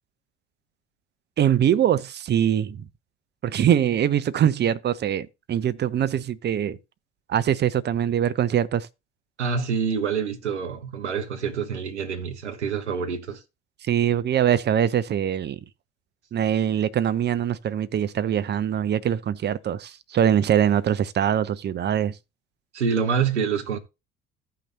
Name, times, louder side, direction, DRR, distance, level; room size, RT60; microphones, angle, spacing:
voice 1, 1.4-2.8 3.4-6.8 7.3-8.9 13.8-15.6 16.3-22.2, right 10 dB, 30° right, 0.6 m, -23 dB
voice 2, 9.4-13.4 22.7-23.8, right 6 dB, 85° right, 0.9 m, -26 dB
15.0 x 5.8 x 2.7 m
figure-of-eight pair, 55°, 34 cm